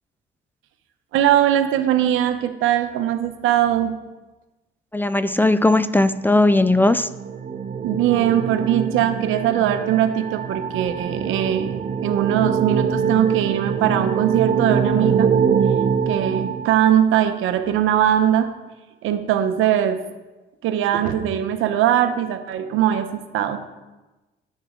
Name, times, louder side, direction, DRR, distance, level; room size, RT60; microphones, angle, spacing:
voice 1, 1.1-3.9 7.8-15.3 16.1-18.5 19.0-20.0 20.6-23.6, right 10 dB, 90° right, 9 dB, 0.8 m, -20 dB
voice 2, 4.9-7.1, left 2 dB, 10° left, 14 dB, 0.3 m, -17 dB
sound 1, 6.5-17.3, right 7 dB, 35° right, 0.7 m, -23 dB
10.0 x 7.4 x 3.8 m, 1.1 s
cardioid pair, 90°, 20 cm